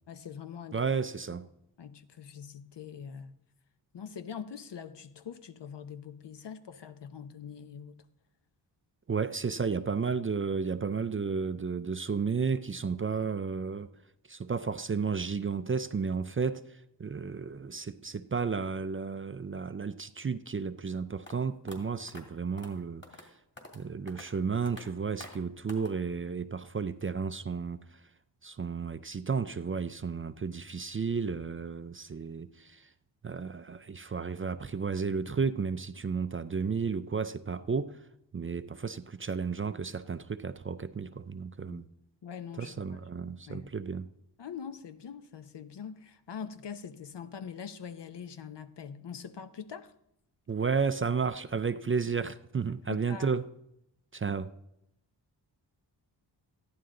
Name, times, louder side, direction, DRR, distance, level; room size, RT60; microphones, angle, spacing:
voice 1, 0.1-0.8 1.8-3.3 3.9-8.0 41.7-41.9 42.2-43.7 44.4-49.9 52.9-53.3, left 7 dB, 65° left, 0.9 m, -43 dB
voice 2, 0.7-1.5 9.1-13.9 14.3-23.3 23.7-28.0 28.4-32.9 33.2-38.0 38.3-41.9 42.6-44.0 50.5-53.5 54.1-54.6, right 5 dB, 30° right, 0.4 m, -33 dB
sound 1, 21.3-21.4 21.7-21.8 22.1-22.2 22.6-22.7 23.0-23.3 23.6-23.8 24.1-24.3 24.7-24.8 25.2-25.4 25.7-25.9, left 1 dB, 25° left, 2.6 m, -47 dB
14.0 x 11.0 x 3.8 m
cardioid pair, 65°, 45 cm